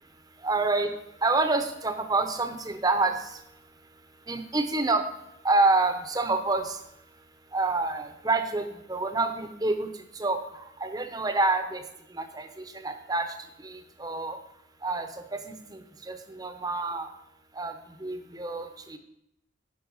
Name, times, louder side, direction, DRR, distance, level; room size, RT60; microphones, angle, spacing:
voice 1, 0.4-3.4 4.3-5.1 5.4-6.8 7.5-14.4 14.8-17.1 17.5-19.0, right 3 dB, 20° right, 7 dB, 0.8 m, -28 dB
11.0 x 5.3 x 5.5 m, 0.79 s
head